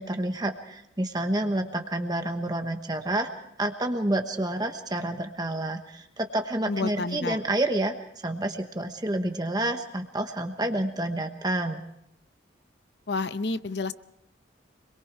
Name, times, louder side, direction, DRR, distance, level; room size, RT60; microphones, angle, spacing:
voice 1, 0.0-3.3 3.6-11.8, right 1 dB, 20° right, 5 dB, 1.1 m, -29 dB
voice 2, 6.7-7.4 13.1-13.9, left 3 dB, 60° left, 13 dB, 0.8 m, -29 dB
26.0 x 22.0 x 4.7 m, 0.77 s
head